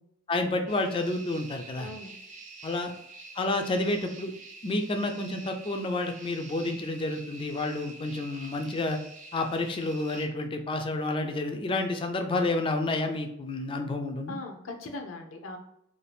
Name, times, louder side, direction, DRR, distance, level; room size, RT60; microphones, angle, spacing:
voice 1, 0.3-1.9 2.6-2.9 3.3-4.3 4.6-9.0 9.3-14.4, left 2 dB, 25° left, 5 dB, 0.3 m, -30 dB
sound 1, 0.7-10.3, right 2 dB, 40° right, 0.5 m, -47 dB
voice 2, 1.8-2.1 14.3-15.6, left 2 dB, 80° left, 3 dB, 0.6 m, -39 dB
2.6 x 2.4 x 3.3 m, 0.75 s
head